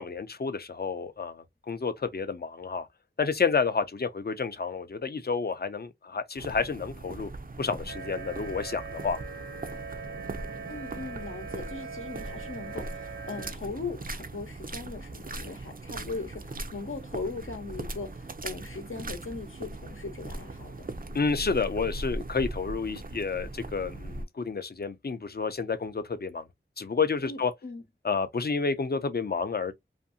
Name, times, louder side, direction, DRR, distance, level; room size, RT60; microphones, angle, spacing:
voice 1, 0.0-2.9 3.2-7.3 7.6-9.2 21.1-26.4 26.8-27.5 28.0-29.7, left 5 dB, 50° left, 0.5 m, -30 dB
sound 1, 6.4-24.2, right 2 dB, 45° right, 0.5 m, -40 dB
sound 2, 7.9-13.5, right 5 dB, 90° right, 0.6 m, -41 dB
voice 2, 10.7-20.9 27.2-27.8, left 3 dB, 85° left, 0.9 m, -39 dB
2.6 x 2.6 x 2.6 m
wide cardioid pair, 45°, 21 cm